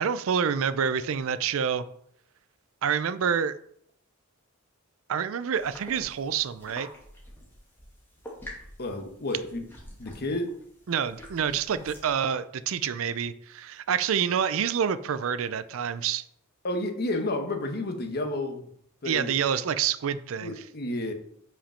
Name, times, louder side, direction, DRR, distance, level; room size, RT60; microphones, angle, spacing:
voice 1, 0.0-1.8 2.8-3.6 5.1-6.9 10.9-16.2 19.1-20.6, right 7 dB, 65° right, 14 dB, 0.4 m, -27 dB
sound 1, 5.5-12.1, left 1 dB, 10° left, 1.9 m, -47 dB
voice 2, 8.8-9.6 10.0-10.6 16.6-18.7 19.0-19.3 20.4-21.1, left 1 dB, 45° left, 5 dB, 1.0 m, -31 dB
5.9 x 5.0 x 5.5 m, 0.70 s
head